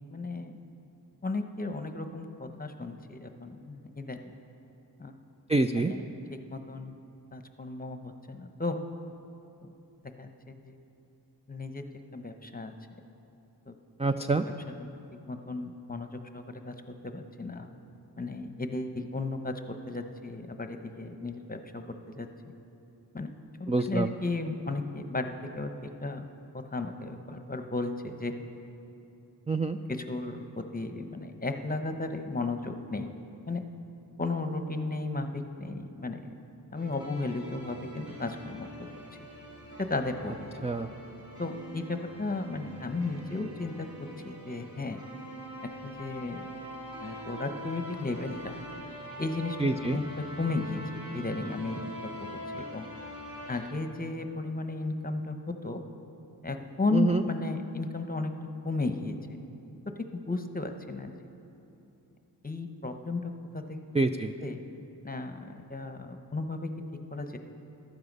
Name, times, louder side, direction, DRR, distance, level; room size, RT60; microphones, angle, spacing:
voice 1, 0.1-0.5 1.2-4.2 5.0-5.1 5.9-6.0 6.5-7.0 7.3-8.8 9.6-9.7 10.2-10.8 11.5-11.8 12.1-12.7 13.7-13.8 14.8-16.7 17.0-17.7 18.2-19.5 19.9-21.8 22.1-22.5 23.1-23.3 23.6-25.3 25.5-25.7 26.0-28.3 30.1-33.1 33.5-33.6 34.2-36.3 36.7-38.9 39.8-40.5 41.4-45.0 45.8-46.4 47.0-48.4 49.2-50.0 50.4-52.9 53.5-55.8 56.4-58.3 58.6-59.2 60.0-61.3 62.4-63.8 64.4-64.6 65.0-66.7 67.1-67.4, left 3 dB, 20° left, 6 dB, 0.9 m, -34 dB
voice 2, 5.5-5.9 14.0-14.5 23.7-24.1 29.5-29.8 40.6-40.9 49.6-50.0 56.9-57.3 63.9-64.4, right 3 dB, 15° right, 7 dB, 0.4 m, -26 dB
sound 1, 36.7-53.7, equal, 55° right, 2.6 m, -43 dB
14.5 x 12.0 x 5.3 m, 2.8 s
wide cardioid pair, 60°, 42 cm